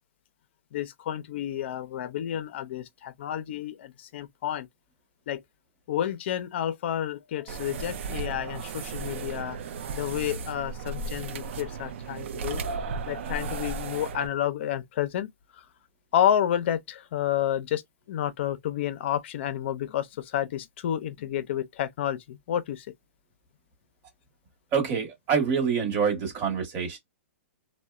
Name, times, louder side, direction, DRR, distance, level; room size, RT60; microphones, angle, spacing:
voice 1, 0.7-4.7 5.3-5.4 5.9-9.6 9.9-12.6 13.1-15.3 16.1-17.8 18.1-22.8, left 10 dB, 55° left, 0.4 m, -30 dB
sound 1, 7.5-14.3, right 4 dB, 60° right, 0.4 m, -35 dB
voice 2, 24.7-27.0, right 6 dB, 30° right, 1.1 m, -26 dB
2.7 x 2.1 x 2.3 m
hypercardioid pair, 140°, 7 cm